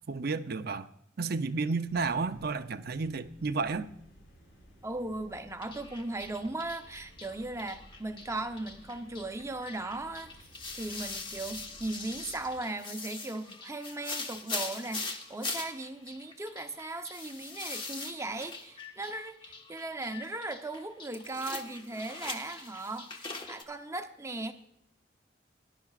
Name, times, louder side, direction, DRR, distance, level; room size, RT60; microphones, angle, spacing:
voice 1, 0.1-0.9 1.2-3.9, right 4 dB, 55° right, 10 dB, 0.6 m, -32 dB
sound 1, 1.8-12.6, right 1 dB, 85° left, 4.7 m, -57 dB
voice 2, 4.8-10.4 10.8-24.5, right 2 dB, 15° right, 6 dB, 0.8 m, -38 dB
sound 2, 5.6-23.6, left 3 dB, 25° left, 1.2 m, -42 dB
19.5 x 11.0 x 2.4 m, 0.75 s
head